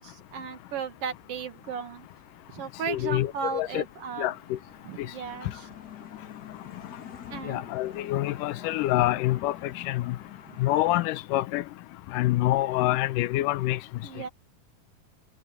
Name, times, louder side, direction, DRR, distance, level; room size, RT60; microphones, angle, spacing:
voice 1, 0.0-2.1 2.5-4.3 4.8-5.7 7.3-7.6 9.0-9.1 10.5-10.6 14.0-14.3, right 6 dB, 60° right, 1.6 m, -36 dB
sound 1, 1.5-11.1, left 8 dB, 40° left, 1.6 m, -47 dB
voice 2, 2.9-3.8 4.2-4.6 5.0-5.1 7.5-10.2 10.6-11.6 12.1-13.8, left 16 dB, 75° left, 2.1 m, -26 dB
omnidirectional pair, 4.1 m